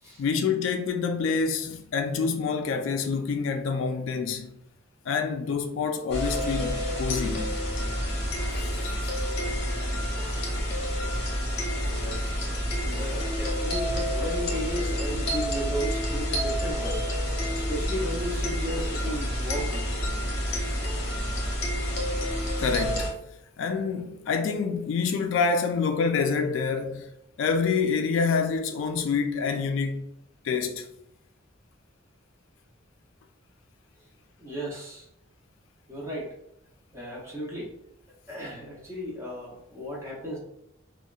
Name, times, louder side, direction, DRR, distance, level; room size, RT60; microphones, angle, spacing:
voice 1, 0.2-4.5 5.1-7.5 8.8-8.9 22.6-23.1 23.6-27.1 27.4-30.0 30.4-30.9, left 5 dB, 70° left, 0.3 m, -27 dB
sound 1, 6.1-23.1, equal, 55° left, 0.7 m, -29 dB
voice 2, 11.8-12.4 12.8-17.1 17.5-19.9 21.9-22.1 34.4-35.1 35.9-36.3 36.9-37.7 38.3-40.4, equal, 15° right, 0.6 m, -35 dB
2.7 x 2.2 x 2.3 m
head